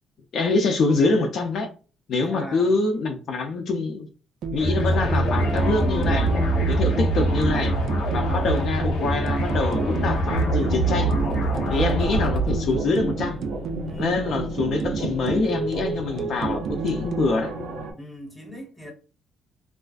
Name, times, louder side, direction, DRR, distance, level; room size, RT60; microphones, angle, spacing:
voice 1, 0.3-1.7 2.1-4.1 4.5-6.3 6.7-7.7 8.1-11.1 11.7-13.4 14.0-17.5, left 3 dB, 55° left, 0.4 m, -25 dB
voice 2, 2.2-2.8 11.6-11.9 13.8-14.5 18.0-18.9, left 1 dB, 5° left, 0.8 m, -40 dB
sound 1, 4.4-17.3, right 4 dB, 60° right, 0.3 m, -31 dB
sound 2, 4.6-12.8, right 1 dB, 85° left, 0.7 m, -24 dB
sound 3, 9.6-17.9, right 2 dB, 85° right, 0.7 m, -35 dB
2.4 x 2.3 x 2.3 m
cardioid pair, 135°, 0 cm